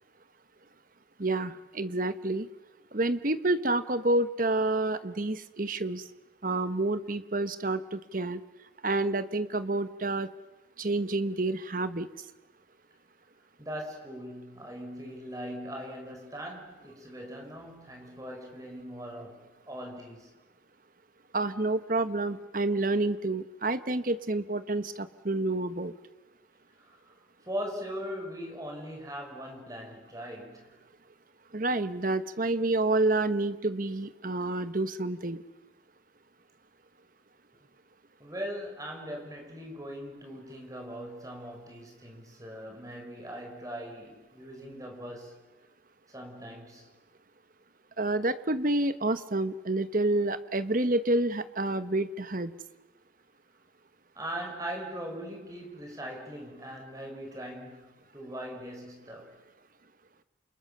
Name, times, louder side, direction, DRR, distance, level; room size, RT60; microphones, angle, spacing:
voice 1, 1.2-2.5 2.9-6.1 6.4-8.4 8.8-10.3 10.8-12.1 21.3-25.9 31.5-35.4 48.0-52.5, right 2 dB, 45° right, 1.2 m, -28 dB
voice 2, 13.6-20.3 26.7-27.1 27.4-30.8 38.2-45.4 46.1-46.9 54.2-59.4, equal, 20° right, 5.4 m, -40 dB
29.0 x 28.5 x 6.9 m
head